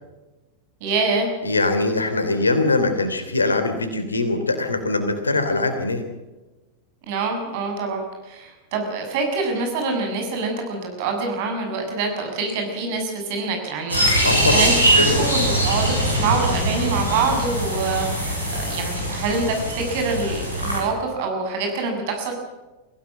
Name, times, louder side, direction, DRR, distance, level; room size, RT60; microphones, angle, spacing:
voice 1, 0.8-1.3 7.1-22.3, right 4 dB, 50° right, 3 dB, 7.0 m, -25 dB
voice 2, 1.4-6.0 14.2-14.7 15.0-15.2, left 2 dB, 80° left, 8 dB, 3.0 m, -22 dB
sound 1, 13.9-20.8, right 1 dB, 85° right, 6.4 m, -22 dB
22.5 x 16.5 x 7.8 m, 1.1 s
figure-of-eight pair, 90°, 0 cm